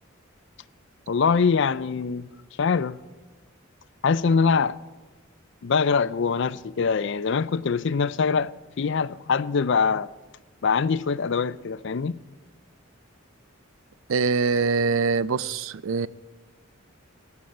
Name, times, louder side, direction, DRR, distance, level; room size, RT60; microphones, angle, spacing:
voice 1, 1.1-2.3 2.6-3.0 4.0-4.8 5.6-8.5 8.8-10.1 10.6-12.2, left 5 dB, 60° left, 0.4 m, -23 dB
voice 2, 14.1-16.1, right 4 dB, 70° right, 0.4 m, -23 dB
17.0 x 6.8 x 8.7 m
head